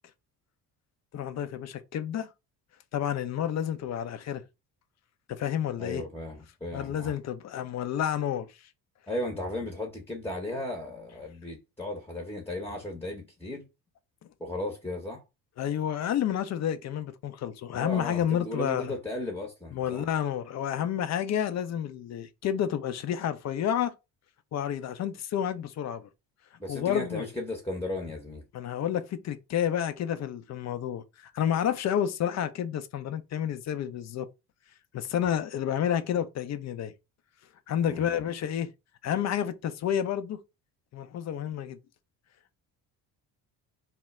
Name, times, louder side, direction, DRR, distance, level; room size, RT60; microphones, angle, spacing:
voice 1, 1.1-2.3 2.9-4.4 5.3-6.0 6.7-8.5 15.6-18.8 19.7-23.9 24.5-26.1 26.7-27.3 28.5-34.3 34.9-36.9 37.7-38.7 39.0-40.4 40.9-41.8, left 9 dB, 40° left, 0.4 m, -30 dB
voice 2, 5.8-7.2 9.1-13.6 14.4-15.2 17.7-20.1 26.6-28.4 37.8-38.1, left 1 dB, 5° left, 0.7 m, -35 dB
2.1 x 2.0 x 3.4 m
hypercardioid pair, 60°, 47 cm